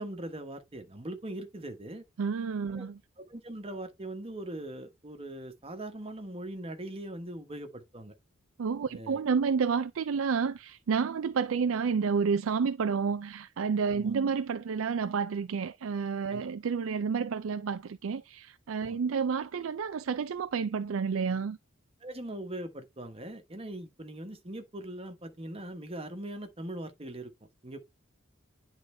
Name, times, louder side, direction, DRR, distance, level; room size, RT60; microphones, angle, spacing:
voice 1, 0.0-2.0 2.7-2.9 3.3-8.1 8.9-9.2 13.9-14.2 16.3-16.4 18.9-19.0 22.0-27.8, right 1 dB, 30° right, 1.4 m, -41 dB
voice 2, 2.2-3.0 8.6-21.6, right 5 dB, 70° right, 0.4 m, -30 dB
10.0 x 3.9 x 3.4 m
head